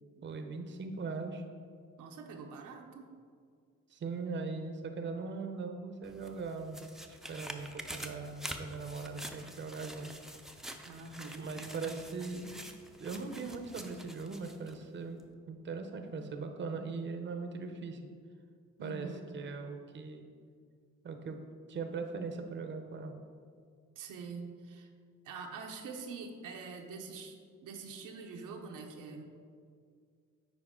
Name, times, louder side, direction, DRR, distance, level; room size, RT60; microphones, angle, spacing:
voice 1, 0.2-1.4 3.9-6.8 7.1-10.1 11.4-12.6 13.0-15.2 15.5-18.0 18.8-19.1 19.3-20.2 21.0-21.4 21.7-23.1, right 4 dB, 40° right, 6 dB, 0.7 m, -40 dB
voice 2, 2.0-3.1 10.8-12.0 18.8-19.3 24.0-24.9 25.2-29.2, right 4 dB, 85° right, 2 dB, 0.9 m, -45 dB
sound 1, 6.0-14.8 15.2-15.3, right 1 dB, ahead, 0.5 m, -47 dB
9.0 x 4.7 x 3.7 m, 2.1 s
cardioid pair, 90°, 30 cm